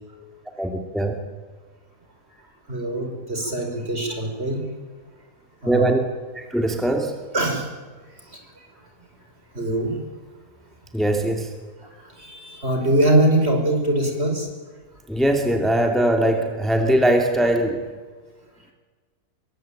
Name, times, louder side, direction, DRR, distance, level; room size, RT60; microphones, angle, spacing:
voice 1, 0.6-1.2 5.6-6.0 6.3-7.1 10.9-11.5 15.1-17.8, right 1 dB, ahead, 3 dB, 2.6 m, -21 dB
voice 2, 2.7-4.6 5.6-5.9 7.3-7.7 8.3-8.4 9.5-10.0 12.2-14.5, right 1 dB, 45° right, 3 dB, 5.8 m, -22 dB
26.0 x 23.5 x 9.1 m, 1.4 s
omnidirectional pair, 1.6 m